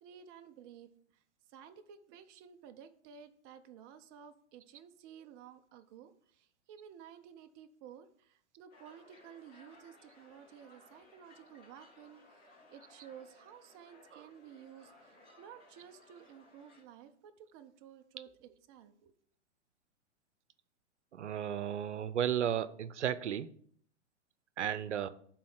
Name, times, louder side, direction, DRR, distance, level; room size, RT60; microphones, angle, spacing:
voice 1, 0.0-1.2 1.5-19.1, right 8 dB, 20° right, 7 dB, 0.3 m, -54 dB
sound 1, 8.7-16.8, left 2 dB, 25° left, 2.2 m, -61 dB
voice 2, 21.1-23.5 24.6-25.1, right 9 dB, 80° right, 16 dB, 0.6 m, -34 dB
11.0 x 3.9 x 4.8 m, 0.62 s
figure-of-eight pair, 110°, 35 cm